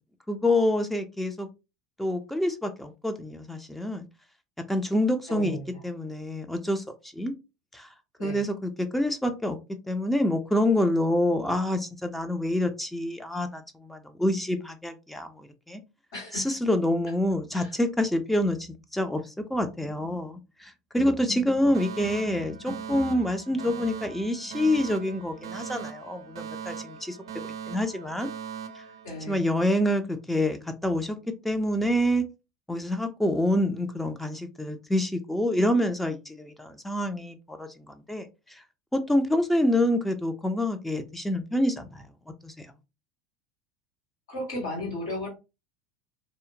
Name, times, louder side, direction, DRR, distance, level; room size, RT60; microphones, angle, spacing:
voice 1, 0.3-1.5 2.0-4.1 4.7-5.6 5.8-6.8 7.2-7.3 7.7-7.9 8.2-9.6 9.9-15.8 16.3-27.2 27.4-28.3 29.3-31.2 31.4-32.2 32.7-38.6 38.9-42.1 42.4-42.7, left 1 dB, 5° left, 0.4 m, -27 dB
voice 2, 5.3-5.7 8.2-8.4 16.1-16.5 17.5-17.7 29.0-29.5 44.3-45.3, left 1 dB, 70° left, 1.6 m, -35 dB
Alarm, 21.7-29.8, right 7 dB, 75° right, 0.5 m, -40 dB
2.7 x 2.0 x 2.6 m
hypercardioid pair, 75°, 3 cm